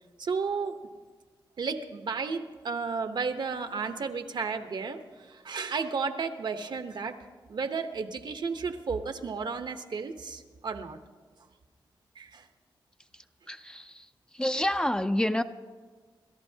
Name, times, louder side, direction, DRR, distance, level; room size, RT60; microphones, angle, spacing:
voice 1, 0.2-0.9 1.6-11.0 12.2-12.5, right 5 dB, 65° right, 8 dB, 0.9 m, -33 dB
voice 2, 13.5-14.0 14.3-15.4, left 1 dB, 10° left, 8 dB, 0.5 m, -28 dB
28.5 x 13.5 x 2.8 m, 1.5 s
wide cardioid pair, 95°, 8 cm